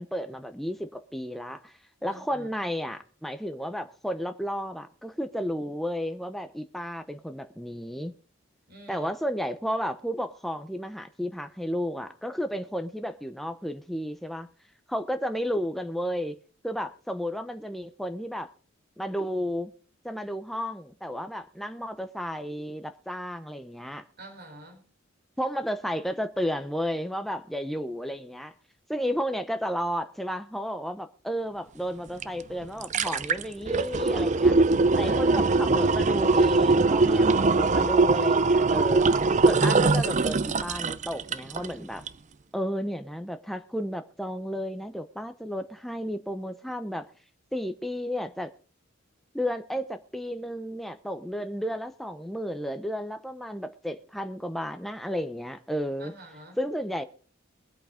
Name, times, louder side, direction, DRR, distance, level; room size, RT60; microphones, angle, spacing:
voice 1, 0.0-1.7 2.0-8.1 8.9-14.5 14.9-16.4 16.6-18.5 19.0-19.7 20.0-24.0 25.4-28.5 28.9-34.6 35.0-39.1 39.4-42.0 42.5-47.1 47.5-48.5 49.3-56.1 56.6-57.0, equal, ahead, 0.8 m, -32 dB
voice 2, 2.1-2.5 8.7-9.1 24.2-24.8 35.0-35.4 56.0-56.6, right 1 dB, 50° right, 4.1 m, -46 dB
sound 1, 32.2-32.3 32.6-41.7 42.1-42.2, right 3 dB, 35° right, 0.6 m, -22 dB
22.5 x 8.5 x 3.7 m
head